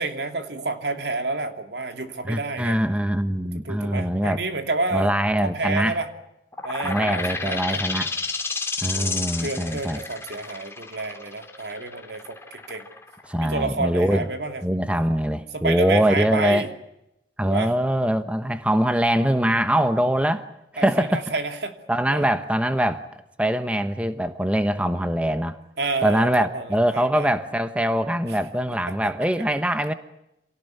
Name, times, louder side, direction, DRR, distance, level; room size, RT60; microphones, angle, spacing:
voice 1, 0.0-2.8 3.6-5.1 5.4-6.1 6.6-7.9 8.9-12.9 13.4-14.6 15.5-16.7 17.4-17.7 20.8-21.7 22.1-22.3 25.8-27.3 28.3-28.4 28.9-29.1, right 3 dB, 75° right, 2.8 m, -29 dB
voice 2, 2.3-4.4 4.9-6.0 6.8-8.1 8.8-10.0 13.3-14.2 14.6-16.6 17.4-20.4 20.7-21.2 21.9-23.0 23.4-25.6 26.0-29.9, equal, 5° right, 1.1 m, -23 dB
sound 1, 6.5-13.9, left 4 dB, 15° left, 2.5 m, -31 dB
27.5 x 18.0 x 9.6 m
head